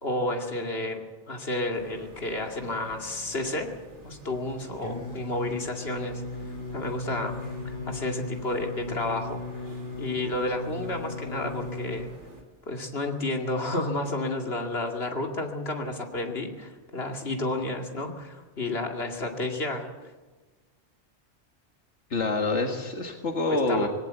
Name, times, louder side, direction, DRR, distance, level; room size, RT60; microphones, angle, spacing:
voice 1, 0.0-3.7 4.0-6.2 6.7-7.4 7.6-9.4 10.0-12.1 12.7-19.9 23.5-23.9, left 2 dB, 60° left, 3 dB, 2.6 m, -31 dB
sound 1, 1.7-12.4, left 2 dB, 80° right, 3.8 m, -46 dB
Singing, 4.8-12.0, left 2 dB, 20° left, 5.0 m, -37 dB
voice 2, 22.1-23.9, left 2 dB, 85° left, 3 dB, 2.0 m, -26 dB
20.5 x 17.0 x 8.1 m, 1.3 s
omnidirectional pair, 1.2 m